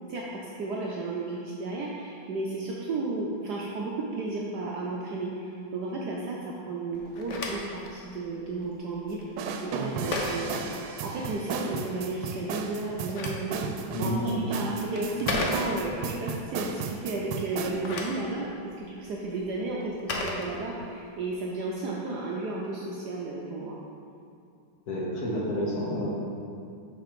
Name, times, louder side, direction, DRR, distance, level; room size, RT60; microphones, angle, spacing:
voice 1, 0.1-9.2 9.6-10.5 11.0-13.6 14.0-18.5 18.8-23.8, right 3 dB, 70° right, -3 dB, 1.0 m, -33 dB
Telephone, 6.9-11.5 12.7-16.1 17.5-21.1, left 2 dB, 80° left, 0.6 m, -36 dB
sound 1, 9.4-17.7, right 5 dB, 85° right, 1.5 m, -34 dB
voice 2, 13.9-14.5 24.9-26.1, equal, 50° left, -5 dB, 1.5 m, -29 dB
6.2 x 5.0 x 5.0 m, 2.4 s
omnidirectional pair, 2.3 m